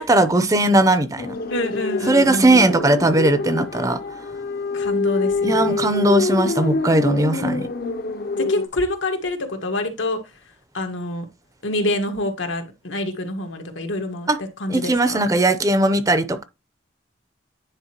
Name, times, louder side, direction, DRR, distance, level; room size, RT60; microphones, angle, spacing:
voice 1, 0.0-1.4 2.1-4.0 5.4-7.7 14.3-14.4 14.7-16.4, right 2 dB, 20° right, 0.5 m, -18 dB
sound 1, 1.2-8.7, left 3 dB, 50° left, 0.7 m, -25 dB
voice 2, 1.5-2.7 4.7-5.9 8.4-10.2 10.7-11.2 11.6-14.3 14.6-15.2, left 1 dB, 90° left, 1.6 m, -26 dB
9.8 x 4.2 x 2.9 m
head